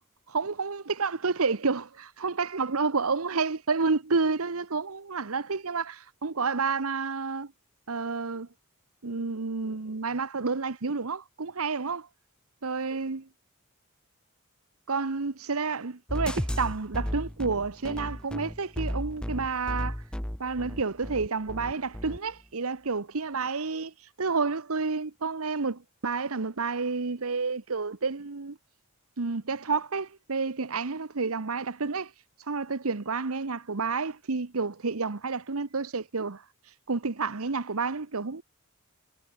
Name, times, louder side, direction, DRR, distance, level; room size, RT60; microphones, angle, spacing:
voice 1, 0.3-7.5 7.9-8.5 9.0-12.1 12.6-13.3 14.9-20.0 20.4-28.6 29.2-32.1 32.5-36.4 36.9-38.4, right 4 dB, 75° right, 1.0 m, -30 dB
sound 1, 16.1-22.2, equal, 5° left, 0.6 m, -34 dB
head